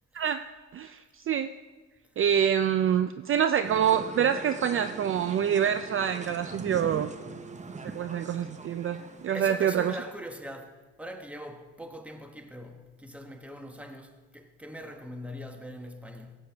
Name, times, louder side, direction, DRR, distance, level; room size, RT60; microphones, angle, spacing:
voice 1, 0.7-1.5 2.2-7.1 7.8-10.0, right 8 dB, 45° right, 0.4 m, -26 dB
sound 1, 3.6-10.4, right 4 dB, 25° right, 0.8 m, -42 dB
voice 2, 9.3-16.4, equal, 5° right, 1.1 m, -42 dB
15.0 x 8.4 x 3.4 m
cardioid pair, 90°, 30 cm